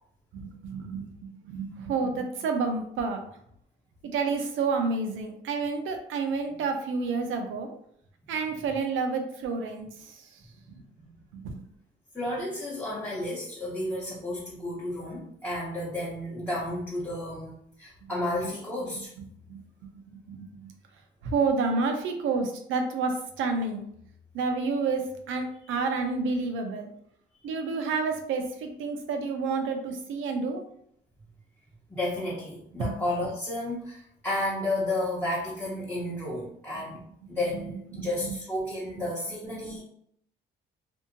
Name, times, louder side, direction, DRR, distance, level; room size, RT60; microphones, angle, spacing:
voice 1, 0.3-3.2 4.1-7.7 8.3-10.1 10.7-10.8 11.3-11.6 19.5-19.6 20.1-20.7 21.2-23.8 24.3-25.0 25.3-26.9 27.4-30.6 32.8-33.0 37.9-38.1, right 4 dB, 85° right, 4 dB, 0.6 m, -29 dB
voice 2, 10.4-11.1 12.1-19.1 31.9-37.0 37.3-39.8, left 1 dB, 10° left, -7 dB, 0.8 m, -32 dB
2.7 x 2.6 x 2.6 m, 0.69 s
cardioid pair, 90°, 20 cm